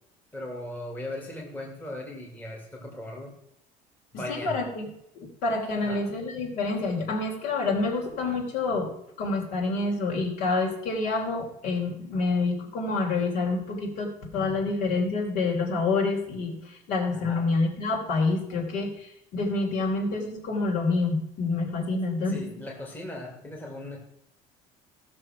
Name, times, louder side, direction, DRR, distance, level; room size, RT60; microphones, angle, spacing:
voice 1, 0.3-3.3 4.1-4.6 5.8-6.0 17.1-17.4 22.3-24.0, left 1 dB, 10° left, -1 dB, 2.2 m, -38 dB
voice 2, 4.1-4.9 5.2-8.9 9.2-22.5, left 3 dB, 60° left, 1 dB, 3.5 m, -27 dB
16.0 x 6.4 x 5.9 m, 0.78 s
cardioid pair, 165°, 15 cm